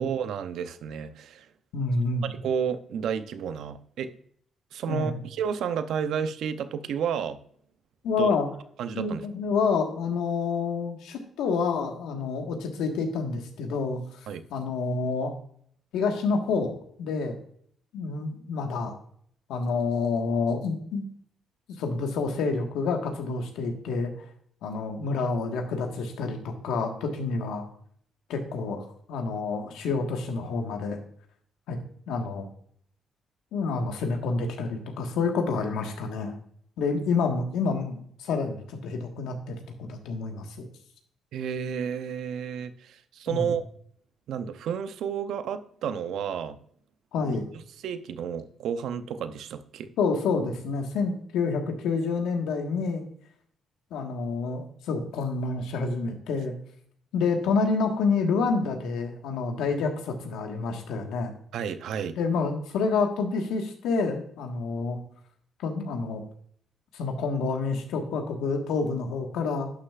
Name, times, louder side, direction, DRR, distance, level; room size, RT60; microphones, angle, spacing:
voice 1, 0.0-1.5 2.3-4.1 4.7-7.4 8.2-8.3 8.8-9.2 14.3-14.4 41.3-43.7 44.3-46.6 47.2-47.4 47.8-49.9 61.5-62.2, right 7 dB, 75° right, 11 dB, 0.7 m, -31 dB
voice 2, 1.7-2.3 4.9-5.2 8.0-8.5 8.9-14.0 14.5-15.3 15.9-16.7 17.0-17.3 17.9-18.9 19.5-21.0 21.8-24.1 24.6-27.6 28.3-31.0 31.7-31.8 32.1-32.5 33.5-36.3 36.8-40.7 43.3-43.5 47.1-47.5 50.0-53.0 53.9-56.5 57.1-61.3 62.2-65.0 65.6-66.2 66.9-69.7, left 4 dB, 90° left, 4 dB, 1.5 m, -28 dB
11.0 x 6.6 x 2.4 m, 0.62 s
cardioid pair, 90°, 0 cm